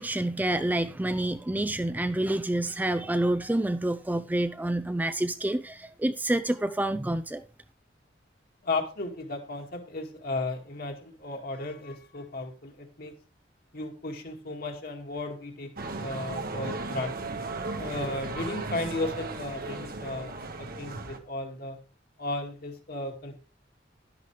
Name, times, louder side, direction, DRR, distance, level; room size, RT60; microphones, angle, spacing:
voice 1, 0.0-7.4, right 1 dB, 10° right, 0.4 m, -28 dB
voice 2, 8.6-13.1 13.7-17.3 17.8-21.8 22.2-23.4, left 2 dB, 55° left, 2.1 m, -35 dB
sound 1, 15.8-21.2, right 3 dB, 55° right, 1.2 m, -36 dB
11.0 x 10.5 x 3.2 m
head